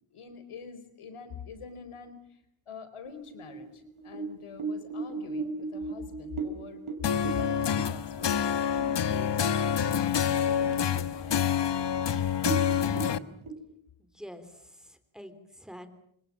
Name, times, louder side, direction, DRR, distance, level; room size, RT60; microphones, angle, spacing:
voice 1, 0.1-2.4 2.7-9.8 10.3-11.7, left 5 dB, 85° left, 11 dB, 4.8 m, -45 dB
sound 1, 3.1-8.9 9.3-9.4 9.8-10.3 10.7-10.8 11.5-11.6 11.8-12.0 12.3-13.5, right 4 dB, 70° right, 5.0 m, -36 dB
sound 2, 7.0-13.2, left 8 dB, 55° left, 1.2 m, -27 dB
voice 2, 14.0-15.9, equal, ahead, 9 dB, 3.4 m, -47 dB
29.0 x 26.0 x 7.5 m, 0.71 s
wide cardioid pair, 140°, 49 cm